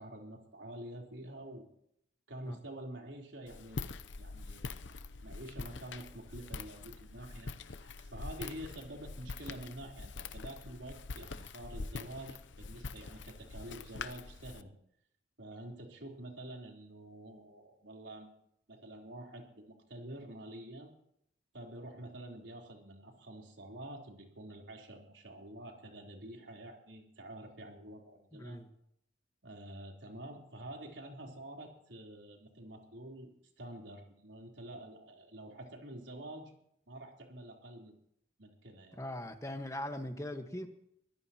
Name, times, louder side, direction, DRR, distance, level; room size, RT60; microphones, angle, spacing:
voice 1, 0.0-1.7 2.3-4.7 5.2-14.7 15.4-18.4 18.7-20.9 21.5-28.6 29.4-33.3 33.6-36.5 36.9-38.0 38.4-39.0, right 1 dB, 80° right, 0 dB, 3.8 m, -48 dB
Walk footsteps, 3.5-14.6, left 4 dB, 80° left, 0.8 m, -44 dB
voice 2, 28.3-28.7 38.9-40.7, left 1 dB, 15° left, 6 dB, 1.4 m, -40 dB
24.0 x 16.0 x 3.0 m, 0.71 s
head